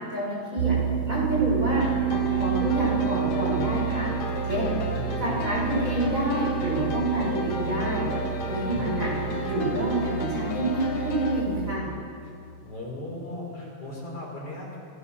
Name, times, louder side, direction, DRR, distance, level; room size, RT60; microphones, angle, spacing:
voice 1, 0.1-0.8 1.1-4.1 4.4-4.7 5.2-8.0 8.5-9.1 9.4-11.9, right 1 dB, 20° right, -5 dB, 7.3 m, -27 dB
sound 1, 0.6-11.8, right 11 dB, 75° right, 1.3 m, -30 dB
sound 2, 1.8-11.4, left 3 dB, 60° left, 2.9 m, -34 dB
voice 2, 4.7-5.5 8.5-9.0 12.2-12.3 12.6-14.8, left 1 dB, 45° left, -2 dB, 5.5 m, -38 dB
28.5 x 18.5 x 7.0 m, 2.4 s
omnidirectional pair, 3.7 m